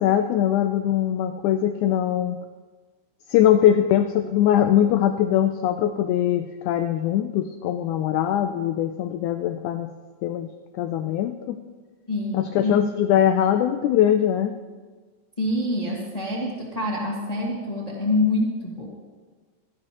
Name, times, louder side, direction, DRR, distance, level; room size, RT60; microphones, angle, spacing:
voice 1, 0.0-2.4 3.3-9.9 10.2-11.6 12.3-14.6, left 10 dB, 90° left, 8 dB, 1.7 m, -21 dB
voice 2, 12.1-12.8 15.4-18.9, left 2 dB, 20° left, -4 dB, 0.9 m, -26 dB
16.0 x 14.0 x 3.0 m, 1.4 s
omnidirectional pair, 4.0 m